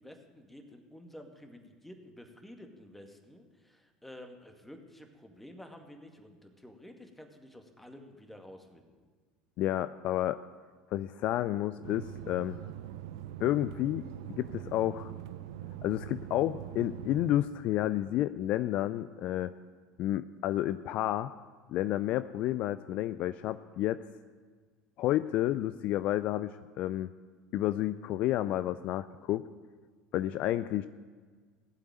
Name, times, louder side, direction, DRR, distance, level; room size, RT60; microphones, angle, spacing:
voice 1, 0.0-8.9, left 1 dB, 5° left, 5 dB, 2.2 m, -51 dB
voice 2, 9.6-10.4 10.9-12.6 13.4-14.1 14.4-15.1 15.8-19.5 20.0-21.3 21.7-24.0 25.0-27.1 27.5-29.4 30.1-30.9, left 13 dB, 55° left, 14 dB, 0.4 m, -30 dB
sound 1, 11.8-17.4, right 12 dB, 70° right, 0.7 m, -43 dB
16.5 x 8.0 x 9.1 m, 1.5 s
hypercardioid pair, 70°, 3 cm